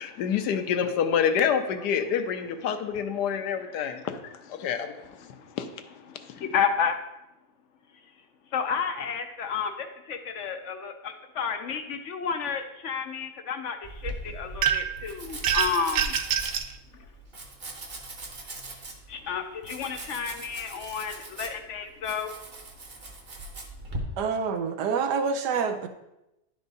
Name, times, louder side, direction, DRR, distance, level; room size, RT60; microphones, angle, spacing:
voice 1, 0.0-4.9 5.6-5.7, left 7 dB, 85° left, 8 dB, 1.3 m, -27 dB
voice 2, 6.4-7.0 8.5-13.8 14.0-16.1 19.1-22.3, left 6 dB, 65° left, 7 dB, 0.7 m, -31 dB
Domestic sounds home sounds, 13.8-24.0, right 2 dB, 40° right, 1.2 m, -41 dB
sound 1, 14.6-15.0 15.4-16.7, right 8 dB, 70° right, 0.9 m, -25 dB
voice 3, 24.2-25.9, right 5 dB, 85° right, 8 dB, 1.3 m, -27 dB
11.0 x 4.7 x 4.0 m, 0.92 s
omnidirectional pair, 1.7 m